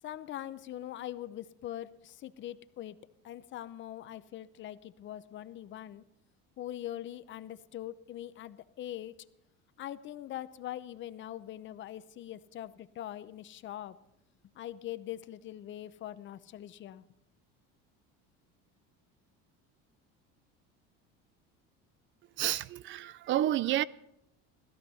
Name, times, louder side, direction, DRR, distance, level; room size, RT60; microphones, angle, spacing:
voice 1, 0.0-3.0 3.2-6.0 6.6-9.2 9.8-14.0 14.6-17.0, left 12 dB, 40° left, 0.8 m, -42 dB
voice 2, 22.4-23.8, right 13 dB, 40° right, 0.5 m, -30 dB
16.5 x 14.0 x 5.5 m
cardioid pair, 130°, 29 cm